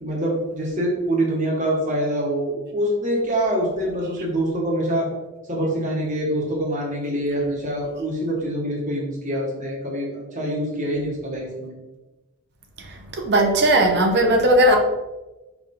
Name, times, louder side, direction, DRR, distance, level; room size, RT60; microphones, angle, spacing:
voice 1, 0.0-5.1 5.5-11.7, right 1 dB, 35° right, -2 dB, 1.5 m, -25 dB
voice 2, 13.1-14.8, right 1 dB, 50° right, 3 dB, 0.9 m, -17 dB
5.1 x 4.9 x 3.8 m, 1.1 s
head